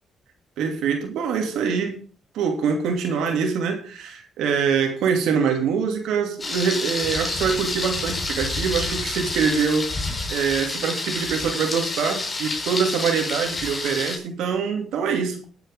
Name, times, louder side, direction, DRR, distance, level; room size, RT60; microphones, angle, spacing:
voice 1, 0.6-2.0 2.3-9.9 10.3-15.5, right 6 dB, 85° right, 3 dB, 2.7 m, -24 dB
Thunder, 6.4-14.2, left 2 dB, 25° left, 3.9 m, -28 dB
21.0 x 8.1 x 3.6 m, 0.41 s
cardioid pair, 90°, 0 cm